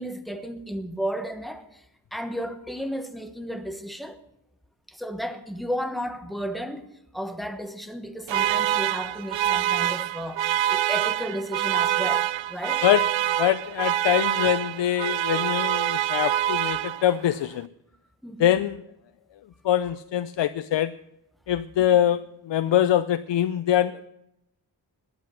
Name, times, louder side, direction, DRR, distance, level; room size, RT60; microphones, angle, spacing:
voice 1, 0.0-1.8 2.1-4.2 4.9-6.9 7.1-12.8 15.4-15.5 18.2-18.5, equal, ahead, 1.1 m, -33 dB
sound 1, 8.3-17.3, right 12 dB, 90° right, 0.5 m, -25 dB
voice 2, 13.4-17.7 18.4-18.8 19.6-20.9 21.5-24.1, left 11 dB, 75° left, 0.6 m, -23 dB
20.0 x 8.3 x 6.2 m
wide cardioid pair, 150°, 43 cm